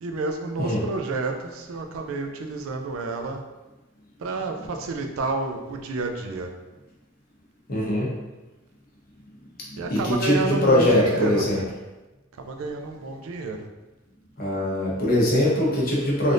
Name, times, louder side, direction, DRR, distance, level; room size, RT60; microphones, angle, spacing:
voice 1, 0.0-3.4 4.2-6.5 9.8-11.7 12.4-13.7, right 3 dB, 80° right, 4 dB, 0.4 m, -30 dB
voice 2, 7.7-8.1 9.9-11.6 14.4-16.3, left 1 dB, 45° left, -5 dB, 0.9 m, -21 dB
3.3 x 2.4 x 2.6 m, 1.1 s
head